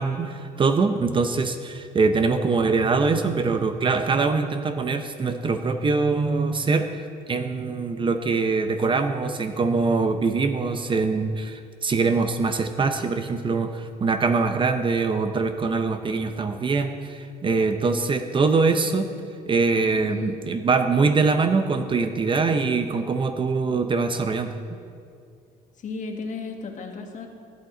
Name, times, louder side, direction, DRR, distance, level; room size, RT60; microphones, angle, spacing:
voice 1, 0.0-24.5, right 4 dB, 30° right, 8 dB, 0.6 m, -23 dB
voice 2, 20.0-20.4 25.8-27.3, left 3 dB, 50° left, 3 dB, 1.5 m, -34 dB
16.0 x 8.5 x 3.9 m, 2.4 s
cardioid pair, 110°, 17 cm